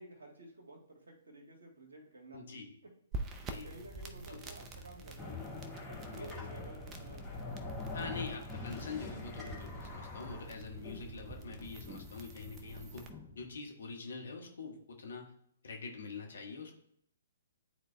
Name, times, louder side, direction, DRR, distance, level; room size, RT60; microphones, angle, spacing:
voice 1, 0.0-2.6 3.5-5.4 5.8-7.6, right 2 dB, 65° right, 0 dB, 1.6 m, -53 dB
voice 2, 2.3-2.7 3.4-3.7 4.3-4.5 6.1-6.3 7.9-13.1 13.3-15.3 15.6-16.8, left 4 dB, 65° left, 2 dB, 1.3 m, -45 dB
sound 1, 3.1-13.1, right 2 dB, 20° right, 0.6 m, -48 dB
sound 2, 5.2-13.6, left 3 dB, ahead, 1.8 m, -45 dB
11.0 x 4.0 x 2.2 m, 0.69 s
figure-of-eight pair, 125°, 0 cm